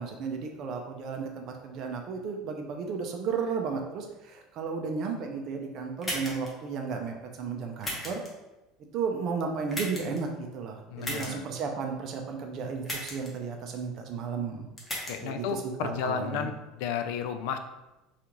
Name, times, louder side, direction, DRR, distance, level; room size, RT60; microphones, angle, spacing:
voice 1, 0.0-8.2 8.9-14.7 15.2-16.5, right 5 dB, 40° right, 3 dB, 0.5 m, -34 dB
sound 1, 6.0-6.5 7.8-8.3 9.7-10.2 11.0-11.3 12.8-13.3 14.8-15.1, left 1 dB, 10° left, 0.7 m, -34 dB
voice 2, 10.9-11.5 15.1-17.6, left 7 dB, 65° left, 8 dB, 0.3 m, -33 dB
5.0 x 2.4 x 2.9 m, 1.0 s
cardioid pair, 165°, 0 cm